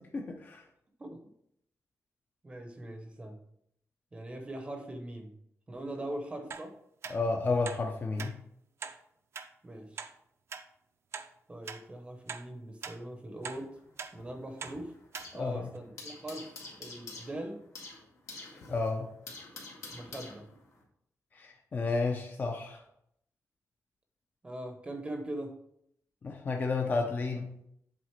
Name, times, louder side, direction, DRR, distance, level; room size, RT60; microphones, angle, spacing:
voice 1, 0.1-0.6 7.1-8.4 15.4-15.6 18.7-19.1 21.3-22.8 26.2-27.5, left 3 dB, 35° left, 2 dB, 0.6 m, -31 dB
voice 2, 2.4-3.4 4.1-5.3 5.7-6.8 9.6-10.0 11.5-13.8 14.1-14.9 15.3-16.5 16.8-17.6 19.9-20.5 24.4-25.6, right 1 dB, 20° right, 4 dB, 0.7 m, -41 dB
sound 1, 6.5-6.7 7.0-7.2 7.6-7.8 8.2-8.3 8.8-9.0 9.3-9.5 10.0-10.1 10.5-10.6 11.1-11.3 11.7-11.8 12.3-12.4 12.8-13.0 13.4-13.6 14.0-14.1 14.6-14.8 15.1-15.3 15.8-15.9, right 6 dB, 50° right, 0.5 m, -41 dB
sound 2, 13.4-15.5 15.8-20.8, left 3 dB, 65° left, 1.8 m, -48 dB
7.8 x 4.0 x 4.5 m, 0.73 s
wide cardioid pair, 180°, 6 cm